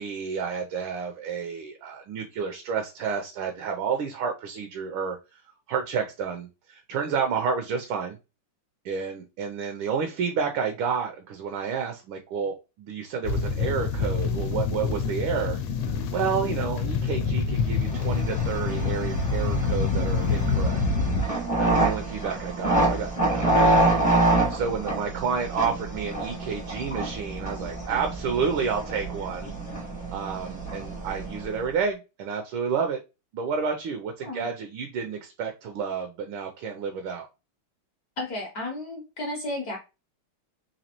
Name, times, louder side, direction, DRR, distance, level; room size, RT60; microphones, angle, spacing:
voice 1, 0.0-5.4 5.7-8.2 8.8-20.8 21.6-23.9 24.1-29.5 30.1-33.0 33.3-37.3, right 6 dB, 75° right, 4 dB, 1.3 m, -30 dB
sound 1, 13.2-21.2, left 4 dB, 85° left, 1.5 m, -26 dB
sound 2, 17.8-31.7, right 2 dB, 15° left, 0.5 m, -27 dB
voice 2, 38.2-39.8, left 1 dB, 60° left, 0 dB, 1.0 m, -33 dB
4.1 x 2.7 x 2.8 m, 0.28 s
omnidirectional pair, 2.4 m